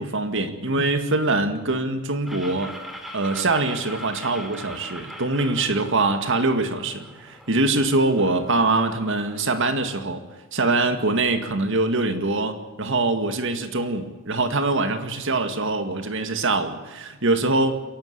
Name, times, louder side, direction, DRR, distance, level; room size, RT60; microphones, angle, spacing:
voice 1, 0.0-2.7 3.1-10.2 10.5-17.7, right 2 dB, 60° right, 8 dB, 2.0 m, -23 dB
sound 1, 2.3-9.8, equal, ahead, 2.7 m, -41 dB
28.5 x 11.5 x 8.3 m, 1.2 s
head